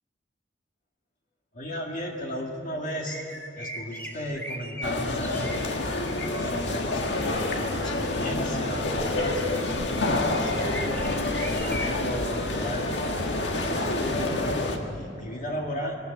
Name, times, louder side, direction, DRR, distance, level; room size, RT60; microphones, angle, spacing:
voice 1, 1.5-3.2 3.6-5.6 6.4-11.2 11.4-12.9 13.5-16.0, equal, 45° left, 0 dB, 2.0 m, -35 dB
sound 1, 3.0-5.8 6.6-7.0 7.6-12.3 12.8-12.9 14.7-14.8, equal, 10° left, 1.5 m, -40 dB
sound 2, 4.8-14.8, left 2 dB, 65° left, 1.8 m, -28 dB
22.0 x 19.0 x 8.1 m, 2.8 s
head